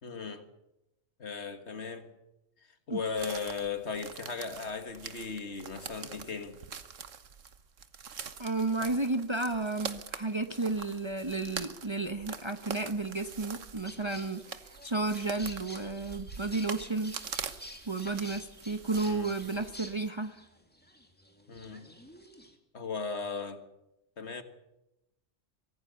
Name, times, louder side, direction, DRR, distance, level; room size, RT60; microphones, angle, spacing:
voice 1, 0.0-0.4 1.2-2.1 2.9-6.6 18.9-19.3 21.5-21.8 22.7-23.6 24.2-24.4, left 5 dB, 60° left, 2.0 m, -37 dB
sound 1, 3.1-20.1, right 6 dB, 80° right, 1.5 m, -44 dB
voice 2, 8.4-14.4 14.8-17.2 17.9-20.4, right 3 dB, 25° right, 0.9 m, -32 dB
sound 2, 13.8-22.5, equal, 10° left, 2.3 m, -50 dB
24.0 x 17.0 x 7.0 m
omnidirectional pair, 1.3 m